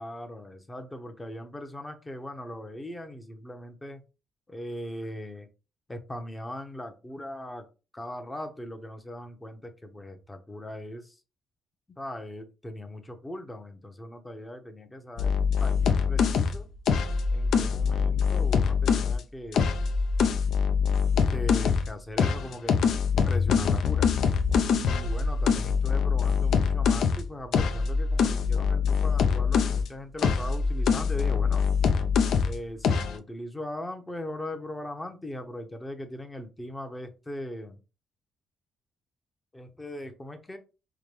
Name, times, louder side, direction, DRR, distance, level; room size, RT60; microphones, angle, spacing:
voice 1, 0.0-4.0 4.5-5.5 5.9-7.7 7.9-11.2 12.0-16.7 17.3-19.8 21.3-22.8 23.2-24.1 24.6-31.6 32.4-37.8 39.5-40.6, left 1 dB, 15° left, 6 dB, 0.8 m, -39 dB
sound 1, 15.2-19.2 19.5-21.9 22.2-29.9 30.2-32.6 32.8-33.2, left 6 dB, 70° left, 0.4 m, -24 dB
4.8 x 2.2 x 3.3 m, 0.31 s
cardioid pair, 90°, 0 cm